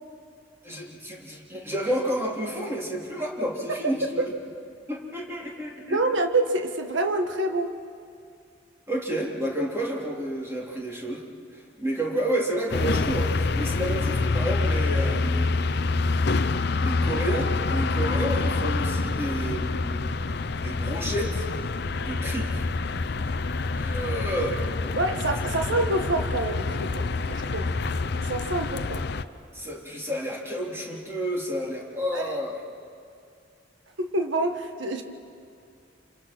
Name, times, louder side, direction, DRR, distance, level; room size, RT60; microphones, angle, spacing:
voice 1, 0.6-4.3 4.9-6.0 8.9-11.2 11.8-15.5 16.7-20.0 20.5-21.5 22.0-22.7 23.7-24.6 29.5-32.6, right 1 dB, 15° right, -2 dB, 3.3 m, -30 dB
voice 2, 5.9-7.8 24.9-27.7 28.3-29.0 32.1-32.3 34.0-35.0, right 2 dB, 80° right, 5 dB, 1.6 m, -27 dB
sound 1, 12.7-29.2, left 3 dB, 60° left, 0.7 m, -26 dB
28.0 x 27.5 x 6.1 m, 2.5 s
head